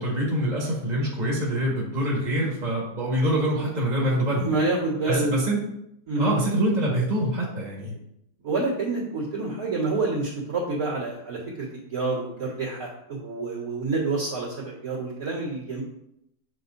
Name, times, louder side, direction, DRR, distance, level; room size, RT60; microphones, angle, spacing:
voice 1, 0.0-4.5 5.1-5.6 6.2-7.9, right 1 dB, 25° right, -4 dB, 1.9 m, -25 dB
voice 2, 4.4-5.4 6.1-6.4 8.4-15.8, right 3 dB, 65° right, -11 dB, 2.6 m, -28 dB
8.6 x 6.3 x 2.7 m, 0.78 s
omnidirectional pair, 1.7 m